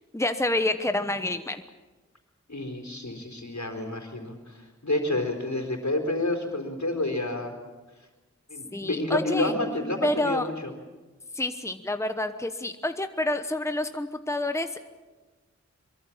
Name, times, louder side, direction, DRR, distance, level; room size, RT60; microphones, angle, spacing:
voice 1, 0.1-1.6 8.7-9.5 10.0-10.5 11.3-15.0, left 1 dB, 10° left, 8 dB, 1.1 m, -28 dB
voice 2, 2.5-7.5 8.5-10.7, left 2 dB, 70° left, 3 dB, 4.2 m, -29 dB
23.5 x 23.0 x 7.4 m, 1.2 s
wide cardioid pair, 45°, 30 cm